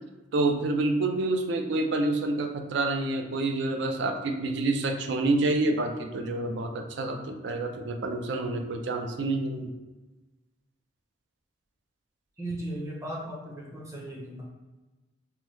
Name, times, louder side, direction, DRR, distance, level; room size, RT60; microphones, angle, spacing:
voice 1, 0.3-9.7, right 2 dB, 60° right, 5 dB, 0.3 m, -28 dB
voice 2, 12.4-14.4, right 1 dB, 15° right, -5 dB, 0.6 m, -36 dB
3.1 x 2.2 x 3.0 m, 1.2 s
head